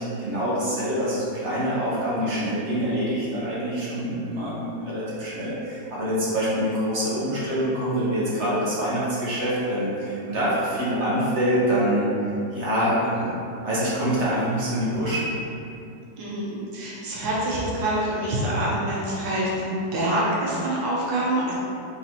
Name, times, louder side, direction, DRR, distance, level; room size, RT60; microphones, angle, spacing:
voice 1, 0.0-12.1 12.5-13.3 13.6-15.3, equal, 45° right, -9 dB, 1.1 m, -25 dB
voice 2, 16.2-21.5, right 1 dB, 85° right, -6 dB, 1.5 m, -26 dB
4.0 x 3.9 x 2.8 m, 2.7 s
omnidirectional pair, 2.0 m